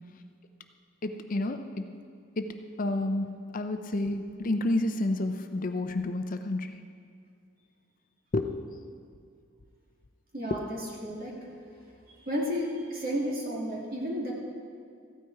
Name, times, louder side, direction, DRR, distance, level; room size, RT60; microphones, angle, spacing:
voice 1, 1.0-1.8 2.4-2.5 2.8-3.3 3.5-6.8 8.3-8.5, left 2 dB, 40° left, 7 dB, 0.5 m, -29 dB
voice 2, 10.3-11.4 12.1-14.3, equal, 45° right, -3 dB, 2.4 m, -32 dB
15.0 x 9.2 x 4.7 m, 2.3 s
head